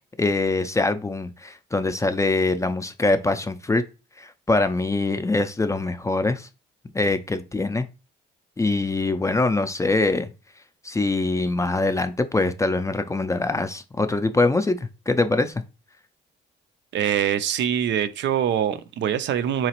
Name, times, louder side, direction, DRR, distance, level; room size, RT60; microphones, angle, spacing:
voice 1, 0.2-3.8 4.2-6.5 6.9-7.9 8.6-10.3 10.8-14.8 15.1-15.5, left 2 dB, 15° left, 0.4 m, -23 dB
voice 2, 16.9-19.7, right 9 dB, 65° right, 0.4 m, -24 dB
3.9 x 2.9 x 2.9 m
cardioid pair, 90°, 20 cm